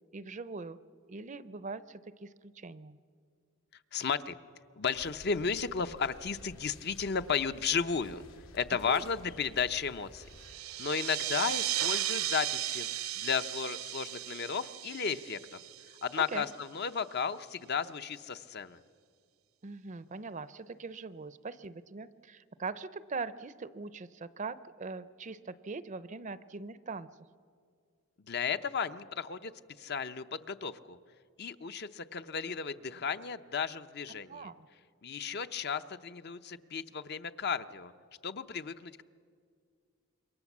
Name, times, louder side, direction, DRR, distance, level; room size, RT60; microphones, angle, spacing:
voice 1, 0.1-0.8 1.1-3.0 8.9-9.1 16.3-16.5 19.6-27.1 34.3-34.7, right 4 dB, 35° right, 15 dB, 0.6 m, -41 dB
voice 2, 3.9-4.4 4.8-8.2 8.5-10.3 10.8-12.9 13.1-15.6 16.0-18.8 28.3-29.5 29.8-31.0 31.4-34.5 35.0-37.9 38.2-39.0, left 6 dB, 50° left, 10 dB, 0.7 m, -34 dB
sound 1, 4.9-10.6, left 1 dB, 90° left, 2.3 m, -53 dB
sound 2, 10.3-16.5, right 13 dB, 80° right, 0.8 m, -35 dB
27.0 x 23.0 x 7.3 m, 2.1 s
head